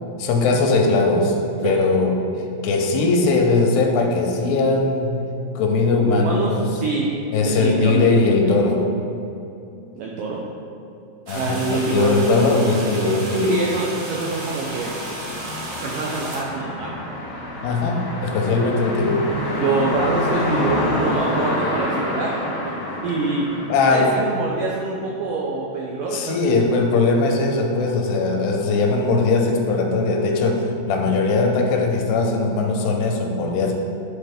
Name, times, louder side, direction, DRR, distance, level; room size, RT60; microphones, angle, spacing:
voice 1, 0.2-2.2 2.6-5.2 5.6-6.7 7.3-8.9 11.3-13.6 17.6-19.3 23.7-24.2 26.1-33.7, left 3 dB, 85° left, 2 dB, 2.8 m, -20 dB
voice 2, 6.0-7.1 7.5-8.1 10.0-10.4 11.3-12.2 13.5-14.9 15.8-16.9 19.6-22.4 22.9-23.5 23.9-26.2, right 3 dB, 85° right, -2 dB, 1.9 m, -25 dB
sound 1, 11.3-16.4, right 1 dB, 60° right, 2.6 m, -33 dB
sound 2, 14.3-24.5, left 1 dB, 60° left, 1.3 m, -27 dB
11.0 x 4.1 x 3.5 m, 2.8 s
omnidirectional pair, 4.6 m